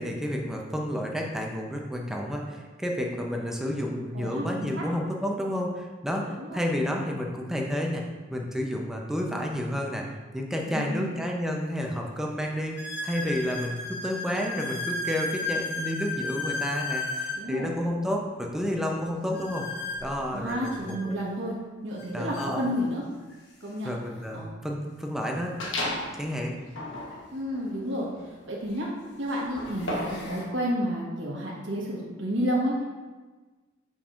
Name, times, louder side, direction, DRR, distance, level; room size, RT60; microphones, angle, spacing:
voice 1, 0.0-8.0 8.3-10.1 10.3-19.7 20.0-21.1 22.1-22.6 23.8-25.6 26.2-26.5, equal, 5° right, 0 dB, 0.6 m, -30 dB
voice 2, 4.1-4.4 4.8-4.9 6.4-6.6 10.7-11.2 17.3-17.7 20.3-23.0 23.6-23.9 24.3-24.5 27.3-28.1 28.5-28.9 29.2-32.8, equal, 75° right, -5 dB, 1.3 m, -30 dB
sound 1, 11.0-11.1 11.8-11.9 12.8-17.4 19.3-21.0 22.0-22.1 22.3-22.5 23.3-23.4 25.6-25.7 27.8-27.9 28.6-28.9 29.5-30.4, left 2 dB, 60° left, 1.0 m, -34 dB
sound 2, 25.6-26.2 26.7-30.3, left 1 dB, 80° left, 1.1 m, -34 dB
7.2 x 5.3 x 2.5 m, 1.3 s
head